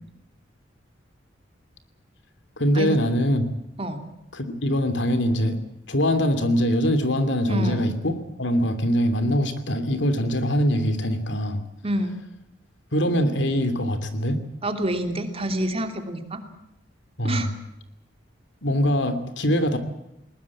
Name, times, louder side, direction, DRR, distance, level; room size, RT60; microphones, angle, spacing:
voice 1, 2.6-3.5 4.3-5.6 5.9-8.1 8.4-11.6 12.9-14.4 17.2-17.5 18.6-19.8, equal, 65° left, 10 dB, 2.8 m, -23 dB
voice 2, 7.5-7.9 11.8-12.2 14.6-16.4 17.2-17.5, right 1 dB, 30° right, 7 dB, 2.8 m, -27 dB
20.5 x 20.5 x 8.6 m, 0.84 s
head